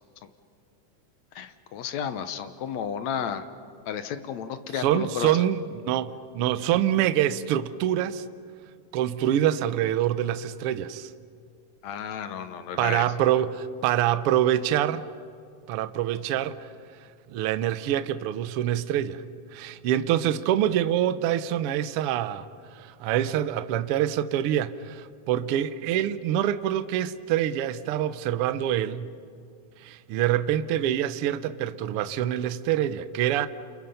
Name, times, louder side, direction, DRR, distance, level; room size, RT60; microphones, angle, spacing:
voice 1, 1.4-3.5 3.9-5.4 11.8-13.1, left 8 dB, 70° left, 2.0 m, -32 dB
voice 2, 4.7-8.2 8.9-11.1 12.8-15.0 15.7-16.7 17.3-19.2 19.5-22.4 22.7-29.1 29.8-33.5, right 11 dB, 85° right, 1.2 m, -25 dB
29.5 x 28.0 x 5.6 m
omnidirectional pair, 3.6 m